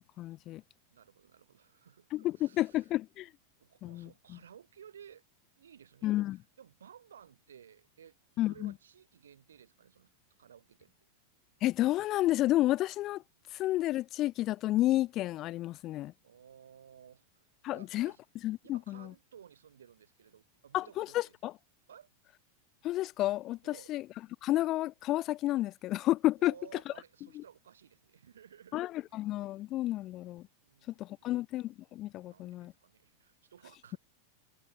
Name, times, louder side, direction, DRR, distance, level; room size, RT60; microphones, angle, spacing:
voice 1, 0.2-0.6 2.1-3.3 3.8-4.4 6.0-6.4 8.4-8.7 11.6-13.2 13.5-16.1 17.6-18.1 18.4-19.1 20.7-21.5 22.8-24.0 24.4-26.5 27.4-27.5 28.7-30.4 31.0-32.7, left 15 dB, 35° left, 0.5 m, -31 dB
voice 2, 0.9-2.9 3.6-5.2 5.6-8.2 8.5-10.1 10.4-11.1 16.2-17.4 17.7-18.2 18.6-21.4 21.9-22.1 23.6-23.9 26.4-29.1 30.6-31.4 32.2-34.0, right 8 dB, 65° right, 2.3 m, -56 dB
figure-of-eight pair, 90°, 0 cm